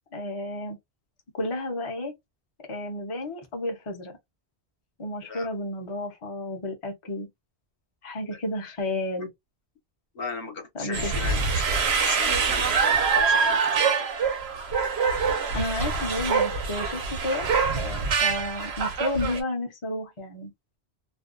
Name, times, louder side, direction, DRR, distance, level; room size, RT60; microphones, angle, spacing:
voice 1, 0.1-0.8 1.3-2.1 2.7-4.2 5.0-7.3 8.0-9.3 10.7-11.1 15.1-17.5 17.7-20.5, left 1 dB, 35° left, 0.7 m, -32 dB
voice 2, 10.1-14.1, left 4 dB, 65° left, 1.0 m, -38 dB
sound 1, 10.9-19.4, right 5 dB, 85° right, 0.9 m, -25 dB
2.5 x 2.2 x 2.3 m
omnidirectional pair, 1.0 m